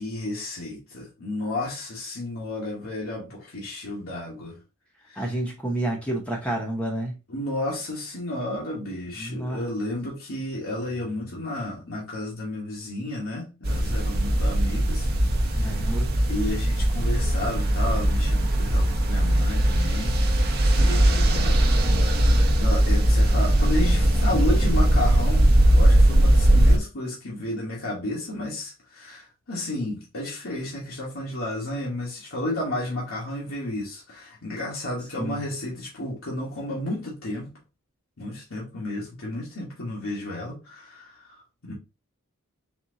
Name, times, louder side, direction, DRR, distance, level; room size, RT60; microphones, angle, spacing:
voice 1, 0.0-4.6 5.1-5.3 7.3-15.1 15.4-15.8 16.3-20.2 20.8-21.6 22.5-37.6 38.2-41.7, left 1 dB, 70° left, 1.2 m, -32 dB
voice 2, 5.2-7.2 9.2-9.7 15.6-16.1 35.2-35.5, right 1 dB, 5° left, 0.7 m, -29 dB
sound 1, 13.6-26.8, right 1 dB, 45° right, 0.7 m, -20 dB
4.2 x 2.5 x 3.8 m
head